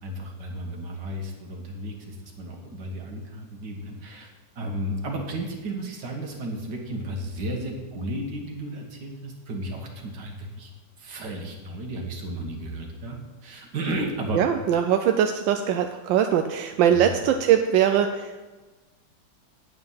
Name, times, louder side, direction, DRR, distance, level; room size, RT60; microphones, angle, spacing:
voice 1, 0.0-4.3 4.6-10.7 11.0-13.2 13.4-14.4 16.9-17.1, right 1 dB, 70° right, 1 dB, 2.2 m, -33 dB
voice 2, 14.3-18.4, right 9 dB, 90° right, 6 dB, 1.3 m, -21 dB
9.0 x 8.6 x 5.6 m, 1.2 s
omnidirectional pair, 2.0 m